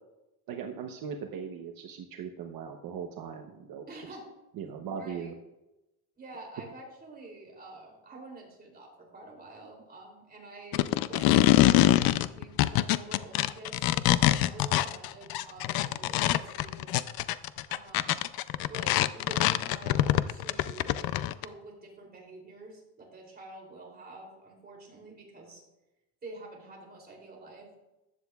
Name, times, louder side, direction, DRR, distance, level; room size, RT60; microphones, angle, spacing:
voice 1, 0.5-4.1 4.6-5.3, right 7 dB, 60° right, 4 dB, 0.9 m, -39 dB
voice 2, 3.9-4.3 4.9-5.3 6.2-16.9 17.7-18.2 18.7-20.9 21.3-25.6 26.2-27.7, right 2 dB, 25° right, -1 dB, 3.1 m, -48 dB
sound 1, 10.7-21.5, left 14 dB, 65° left, 0.5 m, -24 dB
14.5 x 10.0 x 2.4 m, 0.97 s
cardioid pair, 145°, 39 cm